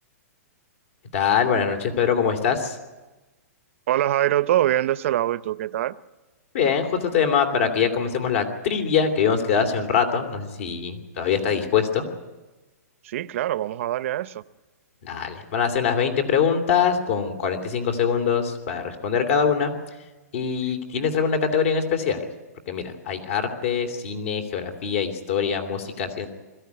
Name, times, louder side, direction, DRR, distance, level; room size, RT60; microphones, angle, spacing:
voice 1, 1.1-2.8 6.5-12.1 15.0-19.7 20.3-22.2 22.7-26.3, left 7 dB, 50° left, 7 dB, 2.9 m, -23 dB
voice 2, 3.9-6.0 13.0-14.4, right 13 dB, 50° right, 17 dB, 0.7 m, -23 dB
21.5 x 14.5 x 9.6 m, 1.2 s
hypercardioid pair, 150°, 9 cm